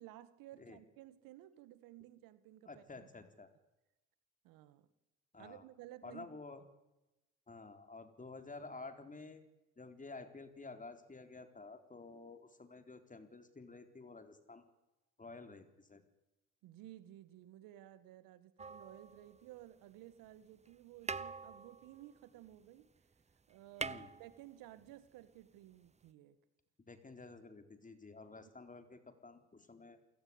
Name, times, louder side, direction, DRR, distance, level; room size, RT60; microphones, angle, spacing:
voice 1, 0.0-3.1 4.4-4.9 5.4-6.3 16.6-22.9 23.5-26.4, right 14 dB, 80° right, 14 dB, 1.8 m, -55 dB
voice 2, 2.7-3.5 5.3-5.6 6.0-6.6 7.5-9.4 9.8-14.6 15.2-16.0 23.8-24.1 26.8-30.0, left 3 dB, 25° left, 8 dB, 4.1 m, -51 dB
sound 1, 18.6-19.8 20.7-20.8 21.0-22.9 23.2-23.3 23.5-24.9 26.1-26.2, right 4 dB, 20° right, 0.9 m, -45 dB
28.0 x 16.5 x 9.8 m, 0.99 s
supercardioid pair, 70°, 34 cm